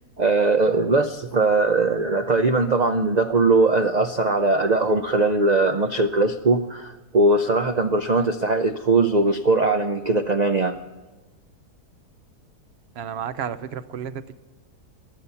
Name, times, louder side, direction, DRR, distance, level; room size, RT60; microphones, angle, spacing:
voice 1, 0.2-10.8, right 3 dB, 85° right, 7 dB, 0.3 m, -20 dB
voice 2, 13.0-14.4, right 8 dB, 60° right, 13 dB, 0.7 m, -32 dB
22.5 x 8.3 x 5.6 m, 1.3 s
omnidirectional pair, 1.7 m